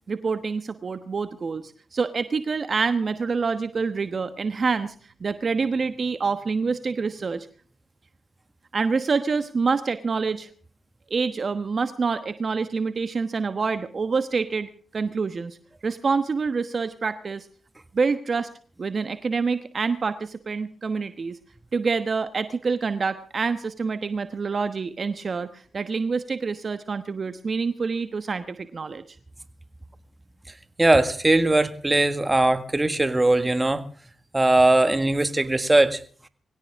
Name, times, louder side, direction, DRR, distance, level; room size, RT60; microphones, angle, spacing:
voice 1, 0.1-4.9 5.2-7.5 8.7-10.5 11.1-15.6 15.8-17.5 17.9-18.5 18.8-21.4 21.7-29.0, right 4 dB, 50° right, 11 dB, 1.1 m, -26 dB
voice 2, 30.8-33.8 34.3-36.0, right 2 dB, 20° right, 10 dB, 1.8 m, -20 dB
22.5 x 17.0 x 3.6 m, 0.42 s
supercardioid pair, 45°, 0 cm